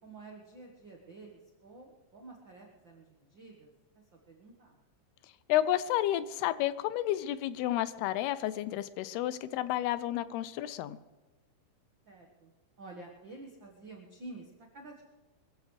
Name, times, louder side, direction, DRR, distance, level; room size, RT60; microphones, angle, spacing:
voice 1, 0.0-3.7 4.1-4.8 12.1-12.5 12.8-15.0, right 2 dB, 75° right, 0 dB, 1.0 m, -50 dB
voice 2, 5.5-11.0, left 13 dB, 80° left, 15 dB, 2.5 m, -31 dB
24.0 x 14.5 x 3.3 m, 1.2 s
omnidirectional pair, 4.7 m